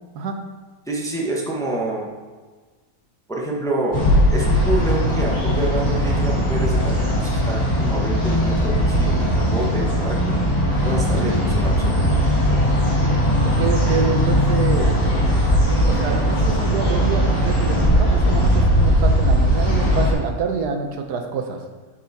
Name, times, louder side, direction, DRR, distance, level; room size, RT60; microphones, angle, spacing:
voice 1, 0.9-2.1 3.3-4.0 4.3-10.3 10.8-12.2, right 2 dB, 5° left, -2 dB, 0.9 m, -27 dB
sound 1, 3.9-20.1, equal, 35° left, 2.6 m, -19 dB
voice 2, 13.4-14.9 15.9-21.6, right 5 dB, 85° right, 4 dB, 1.4 m, -26 dB
10.0 x 4.7 x 4.2 m, 1.4 s
omnidirectional pair, 1.7 m